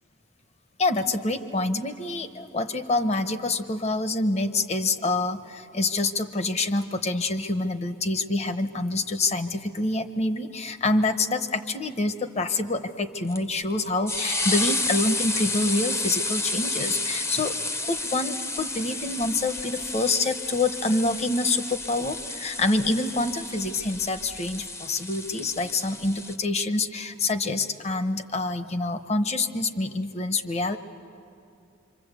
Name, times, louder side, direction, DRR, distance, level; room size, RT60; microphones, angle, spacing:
voice 1, 0.8-17.5 17.8-30.8, left 2 dB, 35° left, 10 dB, 0.9 m, -26 dB
sound 1, 13.3-26.4, left 2 dB, 15° left, 0.6 m, -31 dB
27.0 x 24.5 x 8.2 m, 2.6 s
head